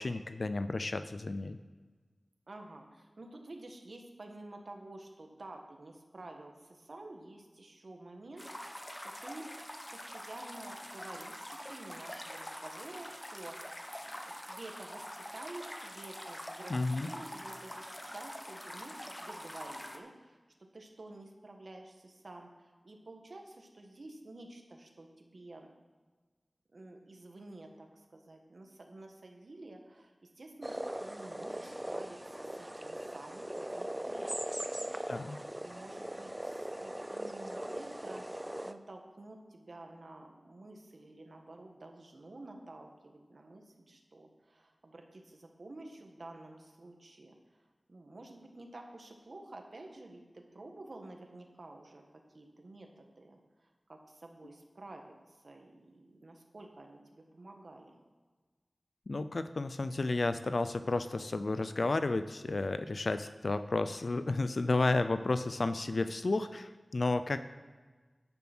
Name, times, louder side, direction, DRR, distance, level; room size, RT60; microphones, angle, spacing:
voice 1, 0.0-1.6 16.7-17.1 35.1-35.4 59.1-67.4, left 2 dB, 70° left, 10 dB, 0.5 m, -32 dB
voice 2, 2.5-9.4 9.9-20.4 20.7-25.7 26.7-34.5 35.6-47.3 47.9-52.0 52.3-53.4 53.9-58.0, right 2 dB, 70° right, 3 dB, 1.6 m, -50 dB
sound 1, 8.4-20.0, equal, 15° left, 1.1 m, -45 dB
sound 2, 30.6-38.7, right 1 dB, 15° right, 0.5 m, -40 dB
10.0 x 7.1 x 6.1 m, 1.4 s
wide cardioid pair, 55°, 0 cm